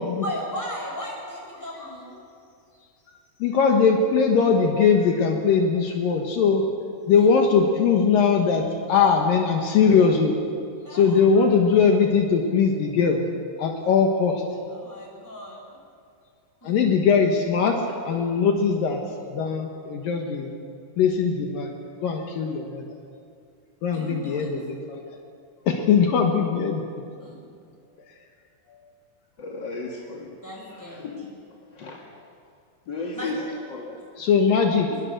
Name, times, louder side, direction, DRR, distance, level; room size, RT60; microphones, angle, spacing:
voice 1, 0.2-2.1 7.1-7.3 10.8-11.5 14.7-15.6 16.6-16.9 23.9-24.5 27.2-27.5 30.4-31.1 33.1-33.3, equal, 5° left, -3 dB, 6.6 m, -36 dB
voice 2, 3.4-6.6 7.1-10.4 10.9-13.2 13.6-14.4 16.6-17.8 18.1-19.0 19.3-20.5 21.0-21.7 22.0-23.0 23.8-25.0 25.7-26.8 34.2-34.9, left 6 dB, 70° left, 2 dB, 3.0 m, -20 dB
voice 3, 29.4-30.4 30.7-31.3 31.7-32.0 32.9-33.4 33.7-34.0 34.9-35.0, left 3 dB, 40° left, -2 dB, 1.9 m, -35 dB
24.0 x 21.5 x 6.7 m, 2.4 s
omnidirectional pair, 4.3 m